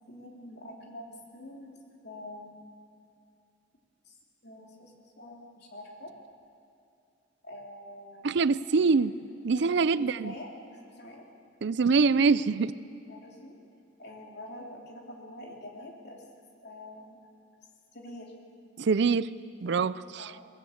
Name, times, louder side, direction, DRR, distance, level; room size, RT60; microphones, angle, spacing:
voice 1, 0.1-1.7 2.0-2.5 4.0-4.2 4.4-6.1 7.4-8.4 9.5-10.5 10.8-11.3 12.3-12.4 13.1-13.6 14.0-16.2 16.6-17.2 17.9-18.3 20.2-20.4, left 1 dB, 60° left, 0 dB, 3.2 m, -46 dB
voice 2, 8.2-9.1 9.4-10.3 11.6-12.7 18.8-19.3 19.6-19.9, right 4 dB, 65° right, 17 dB, 0.5 m, -24 dB
21.5 x 19.0 x 8.0 m, 2.5 s
head